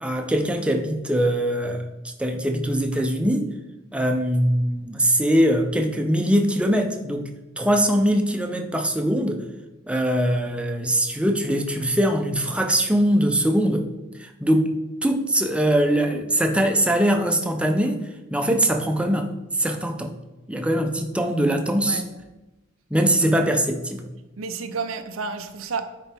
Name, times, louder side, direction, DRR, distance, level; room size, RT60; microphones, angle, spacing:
voice 1, 0.0-1.8 2.2-3.5 3.9-7.3 7.6-9.4 9.9-13.9 14.2-18.0 18.3-20.1 20.5-22.0 22.9-24.1, right 1 dB, 5° right, 4 dB, 0.6 m, -22 dB
voice 2, 24.4-26.1, right 4 dB, 90° right, 8 dB, 0.6 m, -31 dB
9.9 x 4.1 x 3.5 m, 1.0 s
head